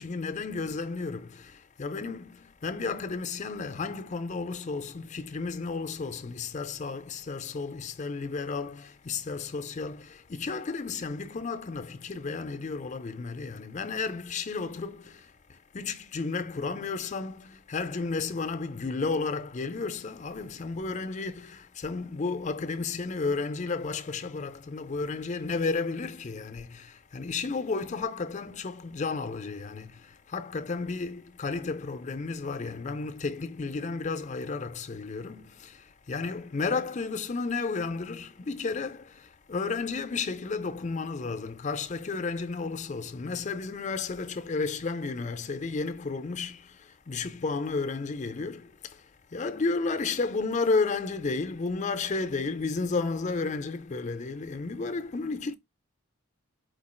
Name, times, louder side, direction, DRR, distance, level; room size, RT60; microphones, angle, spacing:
voice 1, 0.0-55.5, left 4 dB, 35° left, 0.4 m, -33 dB
4.5 x 2.4 x 4.3 m
head